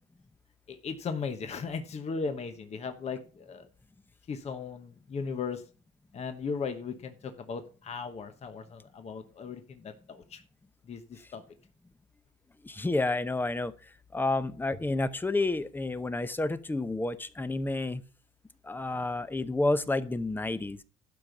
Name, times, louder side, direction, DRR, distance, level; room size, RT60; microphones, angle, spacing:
voice 1, 0.7-3.7 4.3-5.6 6.1-10.4 10.9-11.4, left 5 dB, 40° left, 1.1 m, -37 dB
voice 2, 12.6-18.0 18.6-20.8, left 2 dB, 10° left, 0.7 m, -30 dB
12.0 x 5.2 x 6.0 m
cardioid pair, 110°, 17 cm